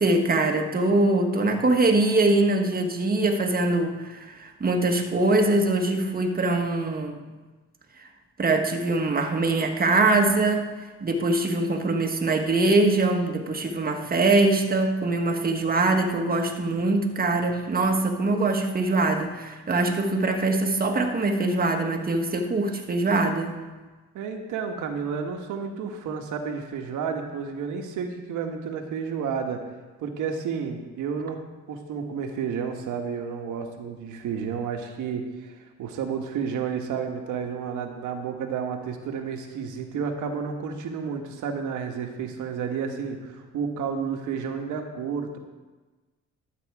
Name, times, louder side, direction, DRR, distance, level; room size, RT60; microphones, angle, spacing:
voice 1, 0.0-7.2 8.0-8.1 8.4-10.7 11.0-23.6, right 2 dB, 30° right, 3 dB, 1.6 m, -23 dB
voice 2, 24.1-29.6 30.0-31.4 31.7-45.4, right 6 dB, 85° right, 4 dB, 1.5 m, -31 dB
12.0 x 8.2 x 4.8 m, 1.3 s
cardioid pair, 90°, 30 cm